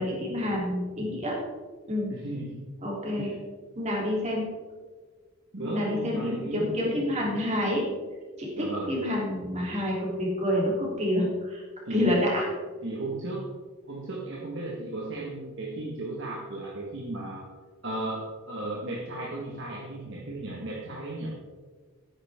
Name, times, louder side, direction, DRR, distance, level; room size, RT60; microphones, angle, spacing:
voice 1, 0.0-1.4 1.9-2.1 2.8-3.3 3.8-4.5 5.6-7.8 8.4-11.6 11.9-12.5, left 1 dB, 30° right, -3 dB, 3.5 m, -28 dB
voice 2, 2.1-2.6 3.2-3.4 5.5-6.7 8.6-8.9 11.9-12.1 12.8-13.5 13.9-17.5 17.8-21.3, right 2 dB, 55° right, -3 dB, 1.7 m, -35 dB
13.0 x 10.0 x 3.7 m, 1.4 s
head